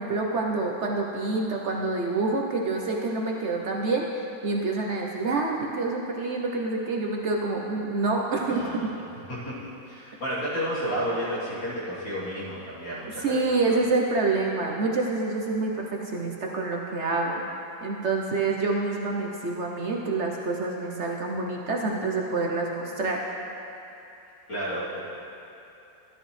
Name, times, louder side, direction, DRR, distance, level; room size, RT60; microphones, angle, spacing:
voice 1, 0.0-4.0 4.4-8.9 13.2-17.4 17.8-23.2, right 3 dB, 60° right, -1 dB, 0.7 m, -27 dB
voice 2, 8.5-8.8 9.3-9.5 9.9-13.4 13.7-13.8 24.5-25.0, equal, 70° left, -10 dB, 3.7 m, -31 dB
13.0 x 11.0 x 3.2 m, 2.9 s
omnidirectional pair, 2.1 m